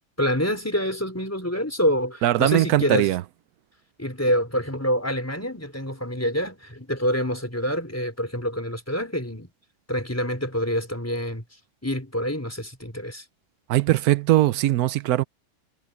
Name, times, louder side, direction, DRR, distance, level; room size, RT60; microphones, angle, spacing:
voice 1, 0.2-3.1 4.0-9.5 9.9-11.4 11.8-13.2, equal, 10° left, 4.4 m, -26 dB
voice 2, 2.2-3.2 13.7-15.2, right 14 dB, 90° right, 1.1 m, -20 dB
omnidirectional pair, 1.6 m